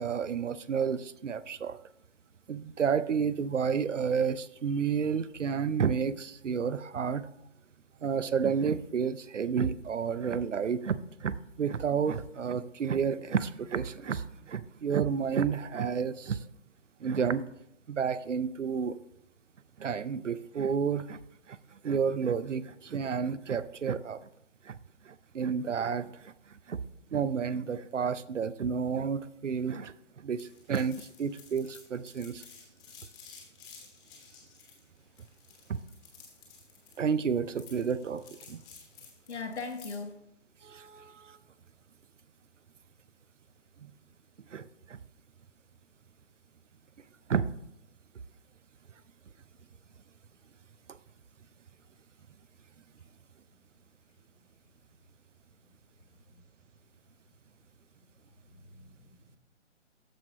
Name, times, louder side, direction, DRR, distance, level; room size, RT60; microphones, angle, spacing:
voice 1, 0.0-1.8 2.5-7.3 8.0-16.4 17.0-17.4 17.9-19.0 19.8-21.2 21.5-21.6 21.8-24.2 24.7-24.8 25.1-26.3 26.7-26.8 27.1-29.9 30.2-32.4 35.7-35.8 37.0-38.6 40.6-41.4 43.8-43.9 44.5-45.0 47.3-47.5, right 6 dB, 80° right, 16 dB, 0.6 m, -31 dB
sound 1, 30.4-40.1, left 6 dB, 10° left, 1.1 m, -53 dB
voice 2, 39.3-40.2 56.3-56.4 58.5-59.4, left 4 dB, 65° left, 7 dB, 1.2 m, -40 dB
13.5 x 4.7 x 3.0 m, 0.79 s
figure-of-eight pair, 140°, 36 cm